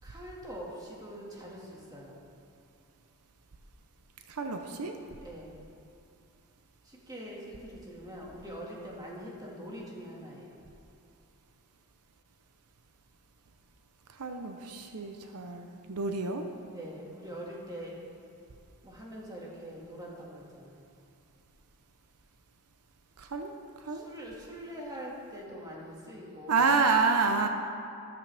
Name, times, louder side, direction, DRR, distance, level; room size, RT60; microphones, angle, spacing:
voice 1, 0.0-2.2 5.2-5.6 6.8-10.6 16.7-18.0 18.8-20.9 23.9-26.6, equal, 15° right, -4 dB, 2.0 m, -43 dB
voice 2, 4.3-5.0 14.1-16.4 23.2-23.5 23.8-24.1 26.5-27.5, right 4 dB, 85° right, 5 dB, 0.8 m, -28 dB
13.0 x 12.5 x 3.5 m, 2.6 s
head